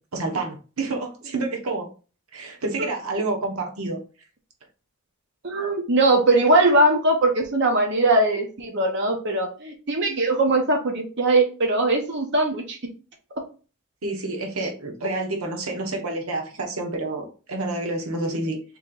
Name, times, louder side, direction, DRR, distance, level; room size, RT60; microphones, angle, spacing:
voice 1, 0.1-1.9 2.3-4.0 14.0-18.6, right 2 dB, 85° right, 2 dB, 1.0 m, -28 dB
voice 2, 5.4-12.8 14.6-14.7 18.2-18.4, right 2 dB, 55° right, 2 dB, 0.8 m, -21 dB
3.5 x 3.1 x 3.9 m, 0.36 s
head